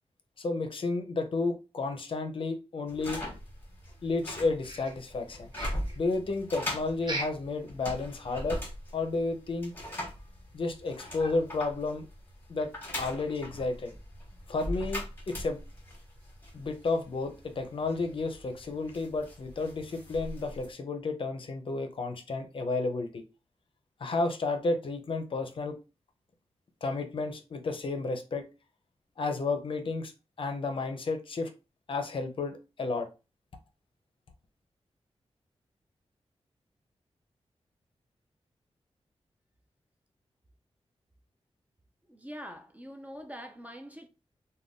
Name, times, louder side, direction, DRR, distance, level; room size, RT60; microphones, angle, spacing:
voice 1, 0.4-3.2 4.0-5.5 6.0-8.6 8.9-9.7 10.5-12.1 12.5-12.7 13.0-13.9 14.5-15.6 16.5-23.2 24.0-25.8 26.8-28.5 29.2-30.1 30.4-31.5 31.9-33.1, left 3 dB, 50° left, 0.5 m, -32 dB
sound 1, 2.9-20.7, left 1 dB, 20° left, 1.0 m, -41 dB
sound 2, 4.6-5.3 5.5-6.0 7.0-7.5 7.9-8.0 8.4-8.5 9.0-9.1, right 2 dB, 45° right, 0.7 m, -38 dB
voice 2, 42.1-44.1, equal, 15° right, 0.3 m, -44 dB
2.5 x 2.2 x 3.4 m
wide cardioid pair, 135°, 11 cm